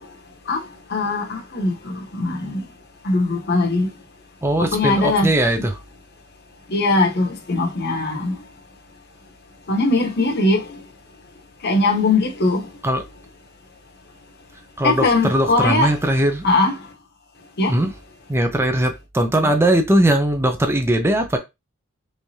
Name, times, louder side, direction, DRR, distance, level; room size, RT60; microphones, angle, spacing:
voice 1, 0.9-2.6 3.0-3.9 4.6-5.6 6.7-8.3 9.7-10.6 11.6-12.6 14.8-15.9 16.4-16.7 17.6-17.7, left 2 dB, 50° left, 0.9 m, -20 dB
voice 2, 4.4-5.8 12.8-13.0 14.8-16.5 17.7-17.9 18.3-21.4, right 1 dB, 10° right, 0.5 m, -19 dB
3.4 x 3.2 x 2.7 m
head